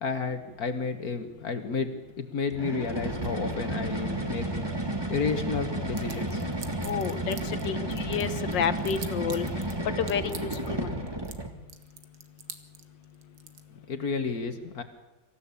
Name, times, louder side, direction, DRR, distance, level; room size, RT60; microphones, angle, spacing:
voice 1, 0.0-4.5 5.1-6.4 13.7-14.8, left 4 dB, 55° left, 8 dB, 1.8 m, -31 dB
sound 1, 2.5-11.6, right 1 dB, 15° right, 1.8 m, -32 dB
sound 2, 6.0-7.7 7.9-9.7 10.1-10.7 11.1-11.4 11.7-13.6, right 8 dB, 75° right, 2.1 m, -42 dB
voice 2, 6.8-7.4 7.6-9.5 10.0-10.9, left 7 dB, 75° left, 13 dB, 1.7 m, -30 dB
25.0 x 15.0 x 8.4 m, 1.1 s
omnidirectional pair, 2.0 m